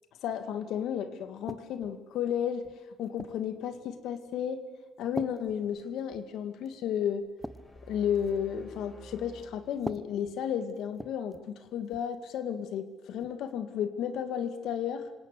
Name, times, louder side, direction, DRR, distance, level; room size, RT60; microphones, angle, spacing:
voice 1, 0.2-2.7 3.0-4.6 5.0-7.3 7.9-15.1, left 8 dB, 85° left, 10 dB, 2.1 m, -33 dB
sound 1, 1.5-2.0 2.6-3.5 4.2-4.4 5.1-6.3 6.7-6.8 7.2-8.5 9.7-11.5 11.8-12.1 13.2-13.4, right 1 dB, 5° right, 1.1 m, -43 dB
sound 2, 7.4-10.7, right 1 dB, 30° left, 6.8 m, -51 dB
26.5 x 18.5 x 8.2 m, 1.3 s
cardioid pair, 90°, 0 cm